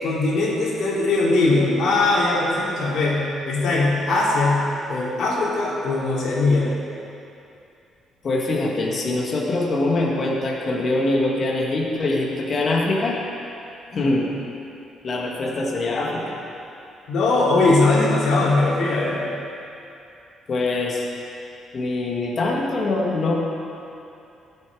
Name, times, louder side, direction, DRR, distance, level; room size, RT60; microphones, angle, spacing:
voice 1, 0.0-4.6 4.9-6.8 17.1-19.3, left 2 dB, 65° left, -5 dB, 3.1 m, -20 dB
voice 2, 8.2-13.2 13.9-14.3 15.0-16.4 20.5-21.0 21.7-23.3, left 2 dB, 35° left, -2 dB, 1.8 m, -23 dB
17.5 x 8.2 x 4.9 m, 2.7 s
cardioid pair, 160°, 0 cm